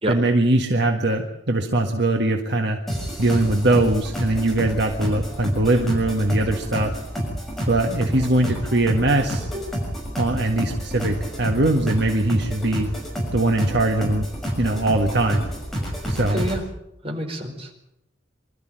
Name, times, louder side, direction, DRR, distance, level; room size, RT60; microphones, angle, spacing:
voice 1, 0.1-2.8 3.2-6.9 7.7-9.5 10.2-12.9 13.3-14.3 14.6-15.5 16.1-16.4, right 2 dB, 60° right, 3 dB, 1.8 m, -21 dB
sound 1, 2.9-16.6, equal, ahead, 6.4 m, -29 dB
voice 2, 16.3-16.6 17.0-17.9, right 1 dB, 30° right, 1 dB, 4.8 m, -28 dB
25.0 x 13.5 x 9.2 m, 0.81 s
head